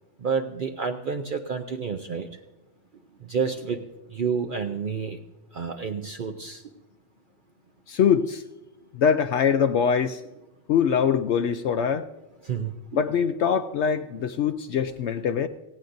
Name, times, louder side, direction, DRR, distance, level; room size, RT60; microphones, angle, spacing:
voice 1, 0.2-2.3 3.2-3.8 4.1-5.2 5.5-6.6 12.4-13.0, right 6 dB, 50° right, 5 dB, 0.7 m, -29 dB
voice 2, 7.9-8.4 8.9-10.2 10.7-12.1 12.9-15.5, left 7 dB, 70° left, 8 dB, 0.8 m, -23 dB
17.5 x 16.0 x 2.6 m, 1.0 s
omnidirectional pair, 1.3 m